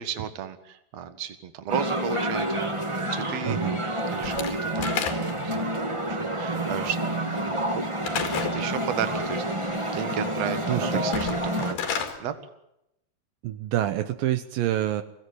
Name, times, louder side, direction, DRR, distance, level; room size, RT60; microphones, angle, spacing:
voice 1, 0.0-3.6 4.1-5.0 5.4-5.7 6.1-7.0 7.4-7.8 8.4-12.4, right 9 dB, 55° right, 9 dB, 2.5 m, -34 dB
sound 1, 1.7-11.7, right 1 dB, 10° right, 1.5 m, -28 dB
voice 2, 3.4-3.8 10.7-11.0 13.4-15.0, right 13 dB, 75° right, 10 dB, 2.6 m, -27 dB
Slam / Wood, 4.2-5.5 8.0-8.6 11.0-12.2, left 7 dB, 80° left, 4.2 m, -30 dB
23.0 x 16.5 x 9.5 m, 0.84 s
omnidirectional pair, 4.1 m